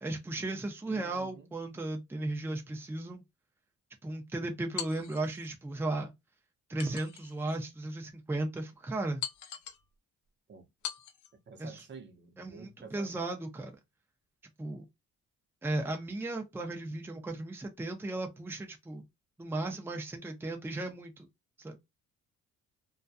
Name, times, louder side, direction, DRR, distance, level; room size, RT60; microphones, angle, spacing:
voice 1, 0.0-3.2 4.0-6.1 6.7-9.2 11.6-11.8 12.4-13.8 14.6-14.9 15.6-19.0 19.4-21.3 21.6-21.8, right 2 dB, 10° right, 0.6 m, -35 dB
voice 2, 0.9-1.5 10.5-10.7 11.5-13.1, right 5 dB, 40° right, 0.8 m, -49 dB
sound 1, 4.8-5.5 6.8-7.6 8.1-8.2 9.2-9.9 10.8-11.3, left 9 dB, 85° left, 0.6 m, -41 dB
2.3 x 2.2 x 2.5 m
cardioid pair, 90°, 30 cm